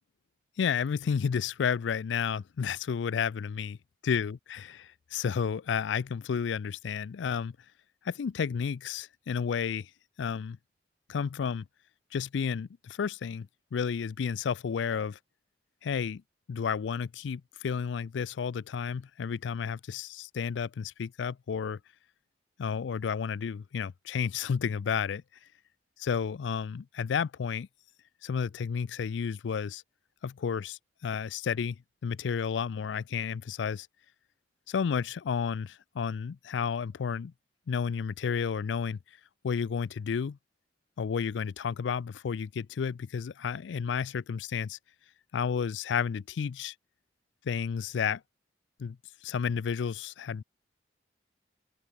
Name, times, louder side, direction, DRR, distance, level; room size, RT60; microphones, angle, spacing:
voice 1, 0.6-3.8 4.0-7.6 8.0-9.9 10.2-10.6 11.1-11.7 12.1-15.2 15.8-16.2 16.5-21.8 22.6-25.2 26.0-27.7 28.2-29.8 30.2-33.9 34.7-37.3 37.7-39.0 39.4-40.4 41.0-44.8 45.3-46.7 47.4-48.2 48.8-49.0 49.2-50.4, left 6 dB, 85° left, 0.4 m, -31 dB
head